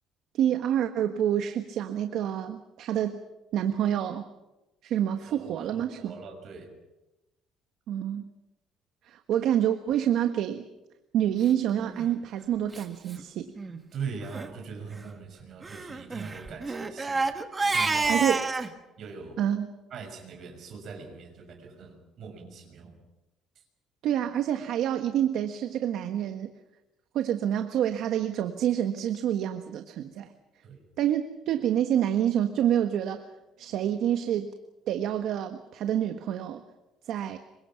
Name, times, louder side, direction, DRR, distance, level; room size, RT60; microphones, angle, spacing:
voice 1, 0.3-3.2 3.5-4.3 4.8-6.2 7.9-8.3 9.0-10.6 11.1-13.5 18.1-18.4 19.4-19.7 24.0-26.5 27.1-30.3 31.0-33.3 33.6-34.5 34.9-36.6 37.0-37.4, right 10 dB, 60° right, 7 dB, 1.4 m, -27 dB
voice 2, 5.3-6.7 13.6-17.3 17.6-18.3 19.0-19.4 19.9-23.0 30.6-30.8, right 5 dB, 45° right, 4 dB, 6.3 m, -41 dB
Crying sobbing, 11.8-12.1 12.7-12.8 13.1-13.2 13.6-13.8 14.2-14.5 15.6-18.7, right 3 dB, 20° right, 1.6 m, -29 dB
27.0 x 24.5 x 5.9 m, 0.99 s
cardioid pair, 155°, 0 cm